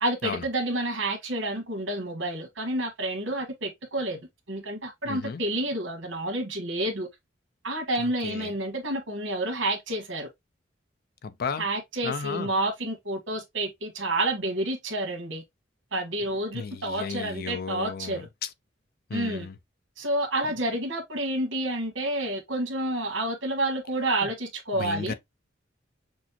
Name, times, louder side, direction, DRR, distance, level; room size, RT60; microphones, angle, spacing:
voice 1, 0.0-4.2 4.5-7.1 7.6-10.3 11.6-15.4 15.9-18.3 19.1-19.5 20.0-25.1, right 1 dB, 80° right, 1.3 m, -29 dB
voice 2, 5.0-5.4 8.0-8.5 11.2-11.7 12.0-12.5 16.5-18.2 19.1-19.6 24.2-24.3 24.7-25.1, left 5 dB, 50° left, 0.5 m, -34 dB
6.1 x 2.1 x 2.7 m
head